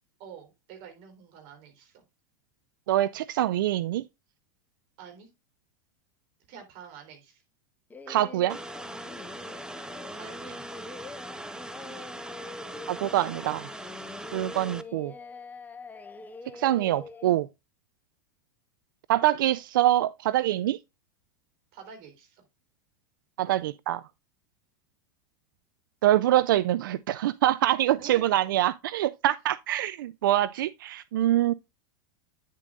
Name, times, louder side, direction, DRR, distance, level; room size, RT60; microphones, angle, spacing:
voice 1, 0.2-2.0 5.0-5.3 6.5-7.4 10.2-10.6 21.7-22.4 28.0-28.4, right 7 dB, 55° right, 3.7 m, -47 dB
voice 2, 2.9-4.0 8.1-8.6 12.9-13.7 14.3-15.1 16.5-17.5 19.1-20.8 23.4-24.0 26.0-31.5, right 13 dB, 70° right, 0.4 m, -25 dB
Singing, 7.9-17.3, left 3 dB, 15° left, 1.1 m, -44 dB
sound 1, 8.5-14.8, right 2 dB, 5° right, 0.7 m, -41 dB
9.6 x 7.5 x 2.4 m
hypercardioid pair, 90°, 11 cm